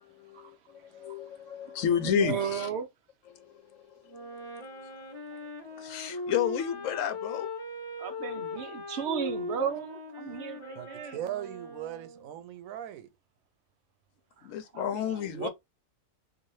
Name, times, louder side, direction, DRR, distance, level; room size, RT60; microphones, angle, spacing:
voice 1, 0.0-2.7 3.3-4.3 5.8-7.5 14.4-15.5, left 9 dB, 75° left, 1.0 m, -32 dB
voice 2, 2.0-2.9 8.0-11.2 14.4-14.5 14.7-15.5, right 8 dB, 65° right, 0.7 m, -34 dB
Wind instrument woodwind instrument, 4.1-12.4, left 2 dB, 20° left, 0.8 m, -39 dB
voice 3, 10.7-13.1, right 11 dB, 85° right, 1.0 m, -39 dB
2.7 x 2.6 x 3.0 m
omnidirectional pair, 1.4 m